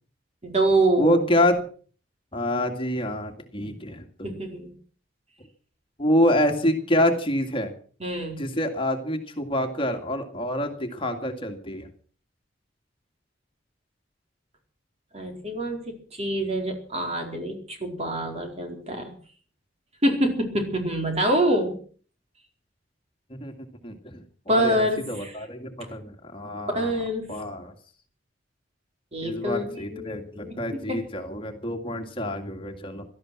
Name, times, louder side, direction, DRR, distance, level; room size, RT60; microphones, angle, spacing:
voice 1, 0.4-1.2 3.6-3.7 4.2-4.7 8.0-8.4 15.1-19.1 20.0-21.8 24.5-25.3 26.7-27.3 29.1-30.6 30.9-31.0, right 1 dB, 35° right, 3 dB, 4.5 m, -26 dB
voice 2, 1.0-1.7 2.3-4.3 6.0-7.7 8.4-11.9 23.3-23.6 23.8-26.9 27.3-27.7 29.2-33.0, left 1 dB, 30° left, 4 dB, 2.2 m, -27 dB
17.5 x 13.0 x 6.2 m, 0.43 s
head